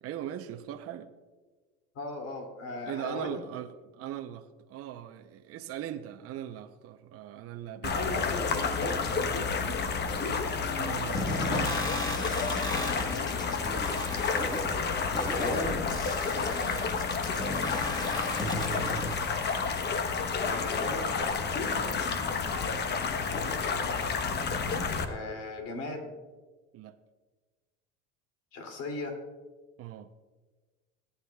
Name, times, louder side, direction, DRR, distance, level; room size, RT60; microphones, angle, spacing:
voice 1, 0.0-1.1 2.8-8.4 10.7-12.1 12.8-13.0 16.6-16.9 21.8-22.0 26.7-27.0 29.8-30.1, right 11 dB, 55° right, 7 dB, 0.7 m, -40 dB
voice 2, 1.9-3.4 7.9-9.0 15.2-15.8 20.4-21.1 25.0-26.1 28.5-29.2, left 2 dB, 60° left, 3 dB, 2.8 m, -36 dB
sound 1, 7.8-25.0, left 5 dB, 35° left, 1.0 m, -30 dB
sound 2, 11.1-19.1, left 1 dB, 15° left, 1.4 m, -35 dB
17.5 x 9.8 x 2.3 m, 1.3 s
supercardioid pair, 100°, 29 cm